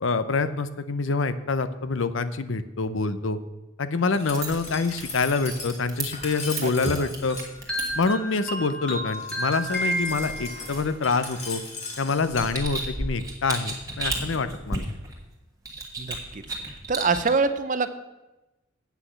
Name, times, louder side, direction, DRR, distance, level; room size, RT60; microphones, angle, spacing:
voice 1, 0.0-3.4 3.8-7.4 7.9-11.6 12.0-14.9, left 4 dB, 65° left, 11 dB, 0.6 m, -26 dB
Glass, 4.1-7.5 9.1-12.5, left 3 dB, 35° left, 2.0 m, -39 dB
sound 1, 4.2-8.0 9.9-11.5 12.0-15.2 15.6-17.3, right 2 dB, 15° right, 1.6 m, -34 dB
sound 2, 7.3-10.8, equal, 5° left, 1.5 m, -31 dB
voice 2, 16.0-16.4 16.9-17.9, right 4 dB, 40° right, 11 dB, 0.6 m, -25 dB
8.3 x 6.0 x 7.8 m, 1.0 s
head